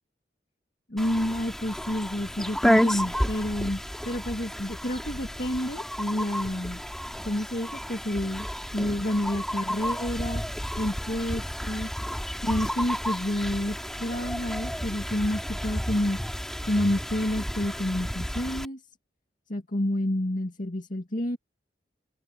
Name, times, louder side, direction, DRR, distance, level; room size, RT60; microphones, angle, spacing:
voice 1, 0.9-6.8 7.2-8.5 8.7-10.4 10.8-11.9 12.4-16.2 16.7-18.8 19.5-21.4, left 1 dB, 50° left, 2.2 m, -29 dB
sound 1, 1.0-18.7, equal, ahead, 2.5 m, -31 dB
open air
head